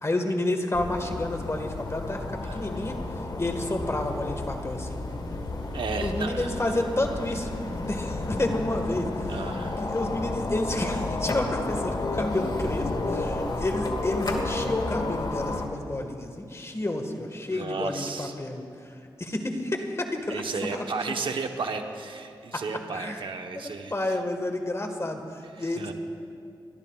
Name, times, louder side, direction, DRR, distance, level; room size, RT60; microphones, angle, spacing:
voice 1, 0.0-2.2 2.5-3.0 3.4-5.0 6.0-7.5 7.9-9.3 9.8-18.6 19.2-20.4 20.7-20.8 22.5-22.6 22.9-23.2 23.5-25.2 25.6-25.9, left 1 dB, 30° left, 4 dB, 1.6 m, -30 dB
sound 1, 0.7-15.7, left 2 dB, 55° left, 1.6 m, -31 dB
voice 2, 5.7-6.8 9.3-9.9 17.5-18.4 20.3-23.9 25.6-25.9, right 4 dB, 70° right, 4 dB, 1.0 m, -34 dB
29.5 x 12.5 x 2.4 m, 2.5 s
cardioid pair, 55°, 9 cm